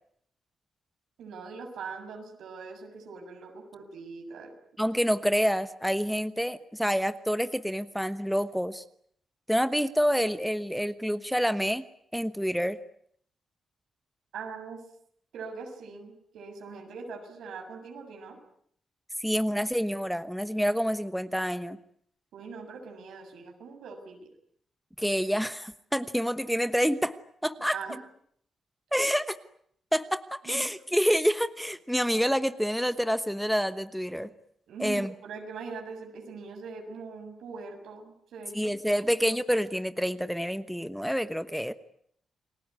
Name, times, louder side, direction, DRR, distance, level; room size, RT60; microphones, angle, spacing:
voice 1, 1.2-4.6 14.3-14.8 15.3-18.4 22.3-24.3 27.7-28.0 30.4-30.6 34.2-34.3 34.7-38.7, right 5 dB, 90° right, 4 dB, 7.1 m, -42 dB
voice 2, 4.8-8.8 9.5-11.8 12.1-12.8 19.2-21.8 25.0-27.2 27.4-27.8 28.9-29.4 29.9-34.3 34.8-35.1 38.5-41.7, equal, ahead, 12 dB, 1.1 m, -27 dB
29.5 x 20.5 x 9.7 m, 0.67 s
cardioid pair, 130°, 0 cm